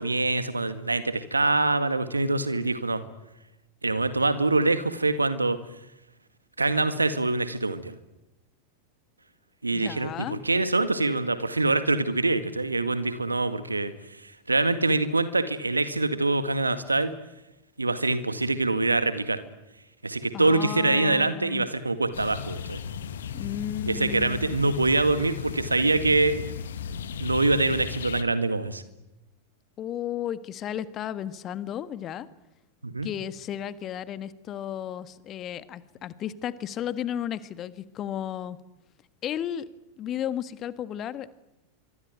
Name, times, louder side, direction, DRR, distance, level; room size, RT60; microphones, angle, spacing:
voice 1, 0.0-3.0 3.8-5.6 6.6-8.0 9.6-13.9 14.2-17.1 17.8-19.4 20.0-22.8 23.9-26.4 27.2-28.8 32.8-33.1, right 2 dB, 80° right, 11 dB, 2.0 m, -24 dB
voice 2, 9.7-10.4 20.3-21.7 23.3-24.7 29.8-32.3 33.0-38.6 39.2-39.7 40.0-41.3, left 10 dB, 30° left, 14 dB, 1.5 m, -34 dB
sound 1, 22.1-28.2, left 7 dB, 65° left, 1.6 m, -36 dB
25.0 x 24.0 x 9.3 m, 0.96 s
figure-of-eight pair, 90°, 0 cm